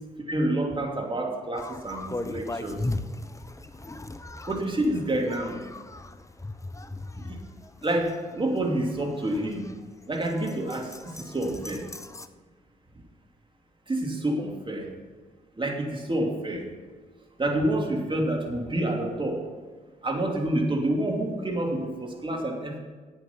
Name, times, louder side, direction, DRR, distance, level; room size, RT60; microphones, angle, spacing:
voice 1, 0.3-2.8 4.5-5.6 7.2-7.4 7.8-9.7 10.1-11.8 13.9-14.9 15.6-16.6 17.4-19.4 20.0-22.8, right 1 dB, 30° right, 1 dB, 2.8 m, -28 dB
sound 1, 1.6-12.3, left 2 dB, 15° left, 0.8 m, -38 dB
11.0 x 8.3 x 5.8 m, 1.4 s
hypercardioid pair, 45°, 18 cm